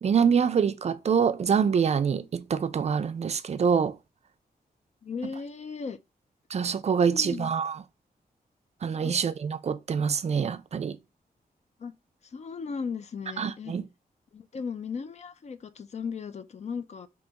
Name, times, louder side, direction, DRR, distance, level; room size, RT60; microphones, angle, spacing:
voice 1, 0.0-4.0 6.5-7.8 8.8-11.0 13.4-13.9, right 6 dB, 45° right, 0.4 m, -25 dB
voice 2, 5.0-6.0 7.1-7.5 9.0-9.1 11.8-11.9 12.2-13.7 14.3-17.1, left 5 dB, 45° left, 0.4 m, -36 dB
3.9 x 2.9 x 3.4 m
wide cardioid pair, 170°, 16 cm